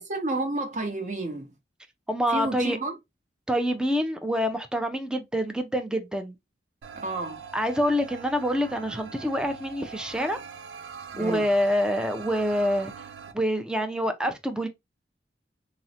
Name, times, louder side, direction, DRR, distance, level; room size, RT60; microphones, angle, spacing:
voice 1, 0.0-1.5 2.3-2.9 6.9-7.4 11.1-11.5, right 2 dB, 45° right, 0.7 m, -31 dB
voice 2, 2.1-2.8 3.5-6.4 7.5-10.4 11.2-12.9 13.3-14.7, equal, 5° right, 0.4 m, -26 dB
sound 1, 6.8-13.3, right 6 dB, 85° right, 0.4 m, -42 dB
3.8 x 2.0 x 2.6 m
head